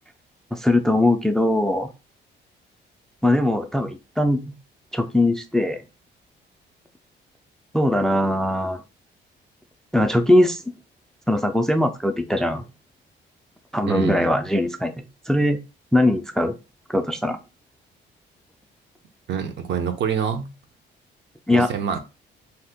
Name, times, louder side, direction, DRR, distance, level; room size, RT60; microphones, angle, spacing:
voice 1, 0.5-1.9 3.2-4.5 4.9-5.8 7.7-8.8 9.9-10.6 11.3-12.6 13.7-15.6 15.9-16.6 16.9-17.4 21.5-21.7, left 1 dB, 5° left, 0.3 m, -21 dB
voice 2, 13.9-14.3 19.3-20.5 21.5-22.0, right 7 dB, 65° right, 0.6 m, -26 dB
2.8 x 2.1 x 3.4 m
cardioid pair, 90°, 20 cm